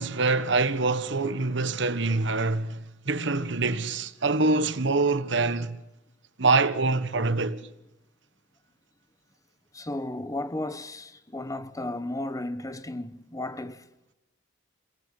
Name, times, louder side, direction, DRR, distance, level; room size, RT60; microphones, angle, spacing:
voice 1, 0.0-5.8 6.4-7.6, right 3 dB, 70° right, 1.4 m, -25 dB
voice 2, 9.7-13.8, left 1 dB, 20° left, 1.1 m, -34 dB
29.0 x 18.0 x 8.0 m
head